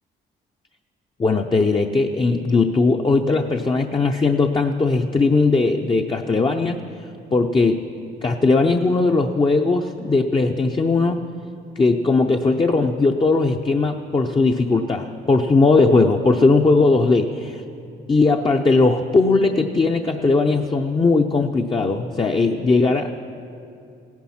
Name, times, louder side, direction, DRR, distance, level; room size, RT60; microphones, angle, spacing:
voice 1, 1.2-6.8 7.3-7.8 8.2-11.2 11.8-17.6 18.1-23.1, left 3 dB, 25° left, 3 dB, 0.6 m, -18 dB
16.5 x 10.5 x 5.7 m, 2.6 s
cardioid pair, 90°, 20 cm